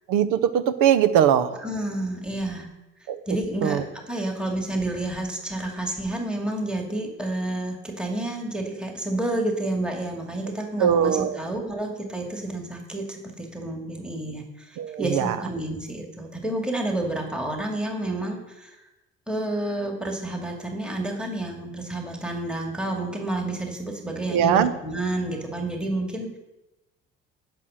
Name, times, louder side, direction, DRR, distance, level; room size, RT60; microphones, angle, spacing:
voice 1, 0.1-1.6 3.1-3.2 3.6-3.8 10.8-11.4 14.8-15.4 24.3-24.7, right 9 dB, 70° right, 13 dB, 0.9 m, -21 dB
voice 2, 1.6-2.7 3.3-18.8 19.3-26.4, right 1 dB, 5° right, 1 dB, 2.3 m, -30 dB
9.9 x 6.2 x 6.5 m, 1.0 s
hypercardioid pair, 60°, 34 cm